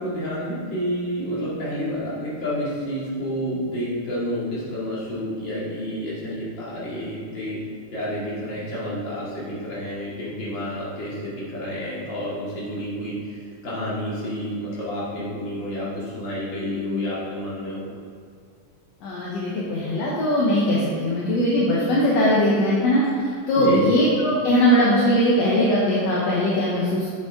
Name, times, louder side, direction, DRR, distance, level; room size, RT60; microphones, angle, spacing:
voice 1, 0.0-7.6 7.9-17.9 23.5-23.9, equal, 40° left, -9 dB, 2.7 m, -29 dB
voice 2, 16.6-17.0 19.0-27.1, equal, 65° left, -6 dB, 2.0 m, -20 dB
7.4 x 7.3 x 3.7 m, 2.2 s
omnidirectional pair, 3.3 m